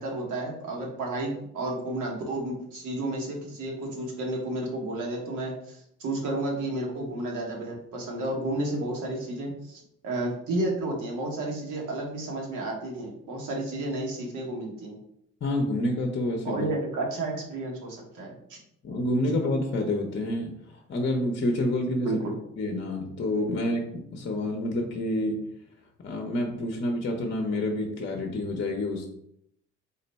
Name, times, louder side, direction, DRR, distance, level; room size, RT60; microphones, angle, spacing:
voice 1, 0.0-15.0 16.4-18.6 22.0-22.3, right 2 dB, 85° right, -1 dB, 1.2 m, -32 dB
voice 2, 15.4-16.7 18.8-22.2 22.6-25.5 26.0-29.1, left 1 dB, 40° left, 2 dB, 0.6 m, -28 dB
3.8 x 2.2 x 4.0 m, 0.74 s
cardioid pair, 90°, 30 cm